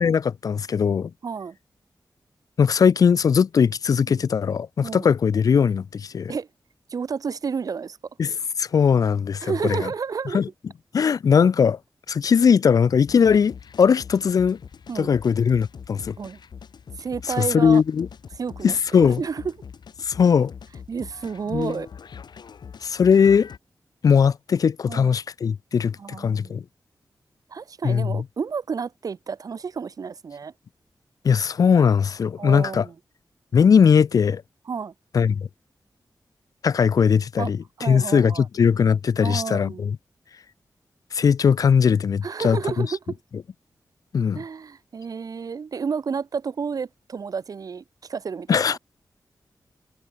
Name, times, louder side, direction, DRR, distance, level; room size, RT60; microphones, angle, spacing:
voice 1, 0.0-1.1 2.6-6.3 8.2-9.9 10.3-10.5 10.9-11.8 12.1-14.6 15.0-16.2 17.4-18.1 18.6-19.2 20.0-20.5 21.5-21.8 22.8-23.5 24.0-26.6 27.8-28.2 31.2-32.9 33.5-34.4 35.1-35.5 36.6-40.0 41.1-42.9 44.1-44.4 48.5-48.8, left 6 dB, 55° left, 0.4 m, -19 dB
voice 2, 1.2-1.6 4.0-4.2 4.8-5.1 6.3-6.5 6.9-8.0 9.4-10.4 13.1-13.2 14.9-15.1 16.2-16.4 17.0-17.8 18.4-19.5 20.9-21.9 24.9-25.1 26.0-26.6 27.5-30.5 32.4-32.9 34.7-34.9 37.4-37.5 37.8-38.5 39.2-39.8 42.2-43.2 44.3-48.8, right 5 dB, 55° right, 1.2 m, -31 dB
sound 1, 13.1-23.6, left 6 dB, 85° left, 3.3 m, -43 dB
wide cardioid pair, 170°, 7 cm